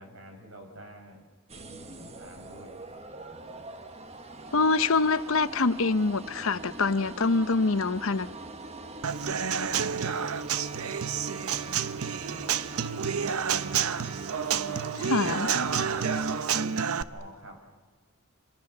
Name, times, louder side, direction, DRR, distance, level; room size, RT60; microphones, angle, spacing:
voice 1, 0.0-2.8 12.2-12.9 15.2-16.6 17.1-17.6, right 1 dB, 60° right, 4 dB, 5.5 m, -47 dB
sound 1, 1.5-16.4, right 2 dB, 30° right, 1.4 m, -43 dB
voice 2, 4.5-8.3 15.0-15.5, left 3 dB, 65° left, 13 dB, 0.9 m, -25 dB
Human voice / Acoustic guitar / Drum, 9.0-17.0, right 7 dB, 80° right, 0.8 m, -29 dB
29.5 x 27.5 x 6.8 m, 1.4 s
head